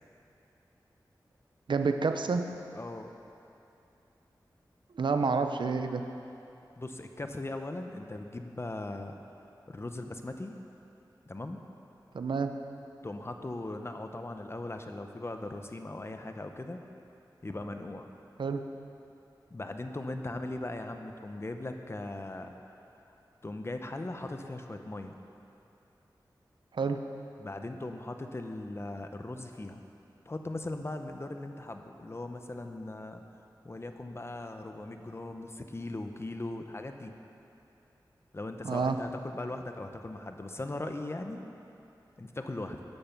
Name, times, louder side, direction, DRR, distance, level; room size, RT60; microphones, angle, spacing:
voice 1, 1.7-2.5 5.0-6.0 12.1-12.5 18.4-18.6 26.7-27.0 38.6-39.0, right 4 dB, 85° right, 7 dB, 0.7 m, -29 dB
voice 2, 2.7-3.1 6.8-9.1 9.7-10.5 11.3-11.6 13.0-16.8 17.4-18.1 19.5-22.5 23.4-25.1 27.4-29.8 30.3-33.2 33.6-37.1 38.3-41.4 42.2-42.8, left 2 dB, 35° left, 6 dB, 0.8 m, -39 dB
14.0 x 11.0 x 6.0 m, 2.8 s
wide cardioid pair, 85°, 8 cm